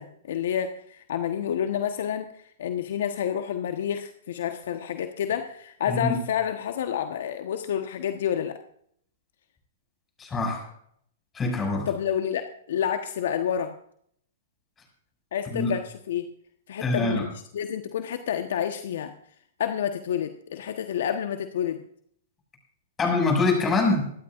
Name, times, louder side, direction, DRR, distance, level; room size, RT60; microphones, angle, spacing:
voice 1, 0.0-8.6 11.9-13.7 15.3-16.3 16.7-19.1 19.6-21.8, left 9 dB, 65° left, 7 dB, 1.2 m, -29 dB
voice 2, 10.2-10.7 11.3-11.9 15.5-15.7 16.8-17.3 23.0-24.1, left 3 dB, 20° left, 2 dB, 6.6 m, -24 dB
24.5 x 12.0 x 2.5 m, 0.65 s
hypercardioid pair, 115°, 0 cm